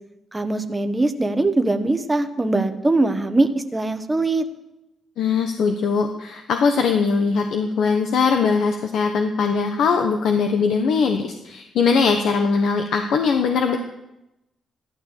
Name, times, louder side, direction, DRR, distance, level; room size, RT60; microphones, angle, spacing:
voice 1, 0.3-4.4, right 2 dB, 10° right, 7 dB, 1.1 m, -21 dB
voice 2, 5.2-13.8, left 5 dB, 70° left, 5 dB, 1.1 m, -20 dB
14.5 x 12.0 x 6.7 m, 0.93 s
cardioid pair, 150°, 0 cm